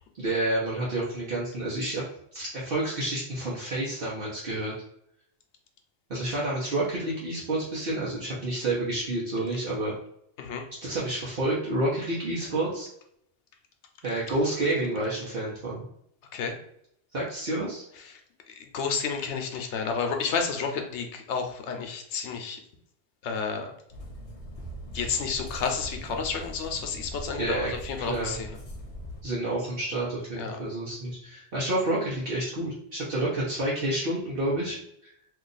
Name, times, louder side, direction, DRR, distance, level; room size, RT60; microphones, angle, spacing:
voice 1, 0.2-2.0 2.3-4.7 6.1-9.9 10.8-12.9 14.0-15.8 17.1-17.8 27.4-27.7 28.0-28.4 29.2-34.8 35.0-35.1, right 1 dB, 60° right, -7 dB, 1.0 m, -29 dB
voice 2, 18.6-22.6 23.2-23.7 24.9-28.5 30.4-30.6, left 5 dB, 80° left, 4 dB, 0.9 m, -31 dB
sound 1, 23.9-29.2, equal, 40° left, 0.5 m, -41 dB
2.7 x 2.4 x 3.9 m, 0.74 s
omnidirectional pair, 1.2 m